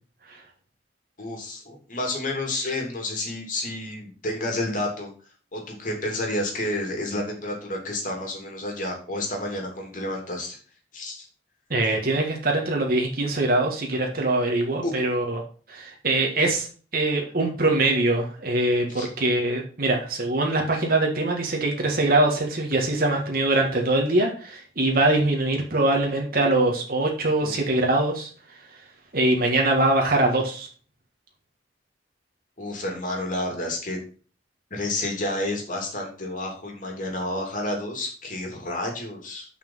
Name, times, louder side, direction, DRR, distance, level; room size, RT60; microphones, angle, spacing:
voice 1, 1.2-5.1 5.5-10.6 10.9-11.3 14.8-14.9 18.9-19.1 27.4-27.5 32.6-34.0 34.7-39.4, left 1 dB, 50° left, 1 dB, 3.0 m, -30 dB
voice 2, 11.7-15.4 15.7-16.7 16.9-28.3 29.1-30.7, right 2 dB, 55° right, 1 dB, 1.7 m, -23 dB
7.3 x 5.8 x 5.6 m, 0.39 s
head